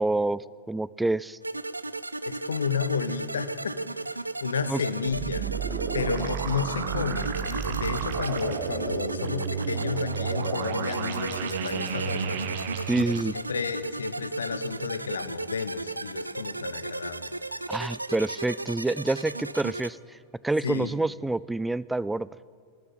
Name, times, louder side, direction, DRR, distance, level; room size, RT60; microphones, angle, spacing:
voice 1, 0.0-1.4 4.7-4.8 12.9-13.3 17.7-20.0 20.4-22.3, right 2 dB, 5° right, 21 dB, 0.3 m, -27 dB
sound 1, 1.4-19.9, right 2 dB, 85° right, 0.4 m, -35 dB
voice 2, 2.3-3.8 4.1-4.2 4.4-5.5 5.9-12.4 13.3-17.3 20.6-21.0, left 6 dB, 70° left, 12 dB, 0.8 m, -32 dB
sound 2, 5.0-13.2, right 7 dB, 55° right, 1.0 m, -32 dB
13.0 x 13.0 x 8.7 m, 2.1 s
figure-of-eight pair, 90°, 0 cm